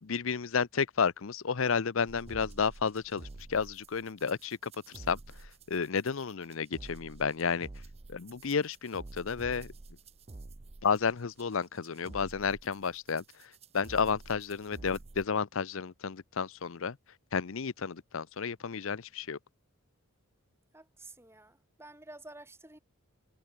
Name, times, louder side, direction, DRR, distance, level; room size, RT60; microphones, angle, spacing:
voice 1, 0.0-5.2 5.7-7.7 8.1-9.7 10.8-17.0 17.3-19.4, left 6 dB, 70° left, 0.6 m, -32 dB
sound 1, 2.1-15.3, right 2 dB, 30° right, 0.6 m, -49 dB
voice 2, 20.7-22.8, right 2 dB, 10° right, 5.4 m, -51 dB
head